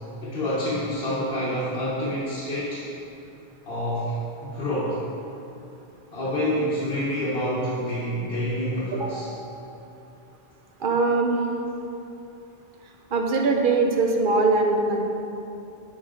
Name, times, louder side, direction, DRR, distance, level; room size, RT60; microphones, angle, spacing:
voice 1, 0.2-2.9 3.7-5.0 6.1-9.3, equal, 70° left, -8 dB, 1.3 m, -27 dB
voice 2, 8.9-9.3 10.8-11.5 13.1-15.0, right 3 dB, 60° right, 2 dB, 0.9 m, -22 dB
10.0 x 4.8 x 3.8 m, 2.9 s
omnidirectional pair, 1.0 m